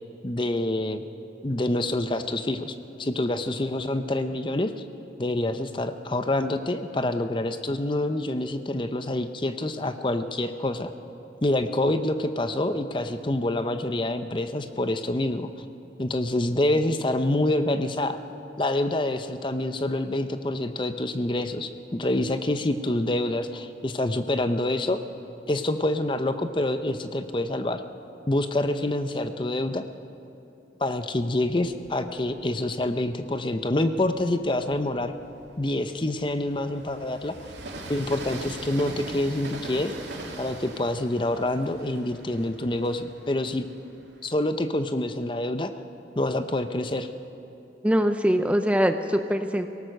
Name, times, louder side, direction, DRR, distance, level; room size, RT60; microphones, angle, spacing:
voice 1, 0.2-1.1 1.4-4.7 5.2-10.9 11.4-15.5 16.0-18.2 18.6-25.0 25.5-27.8 28.3-29.8 30.8-35.1 35.6-37.4 37.9-39.9 40.4-43.7 44.2-45.7 46.2-47.1, left 1 dB, 25° left, 9 dB, 0.7 m, -26 dB
Train, 31.5-33.2 33.8-44.4, right 2 dB, 85° right, 2.5 m, -42 dB
voice 2, 47.8-49.7, equal, 5° right, 7 dB, 0.6 m, -23 dB
23.0 x 18.0 x 6.6 m, 2.8 s
head